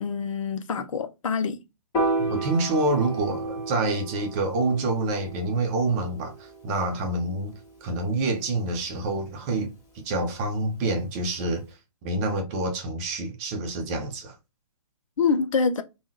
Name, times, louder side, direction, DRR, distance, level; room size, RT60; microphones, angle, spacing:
voice 1, 0.0-1.6 15.2-15.8, left 5 dB, 55° left, 0.6 m, -25 dB
Piano, 1.9-8.3, right 2 dB, 20° left, 1.4 m, -33 dB
voice 2, 2.2-7.5 7.8-11.6 12.0-14.4, right 2 dB, 25° right, 0.7 m, -27 dB
3.5 x 2.3 x 2.8 m
figure-of-eight pair, 125°, 20 cm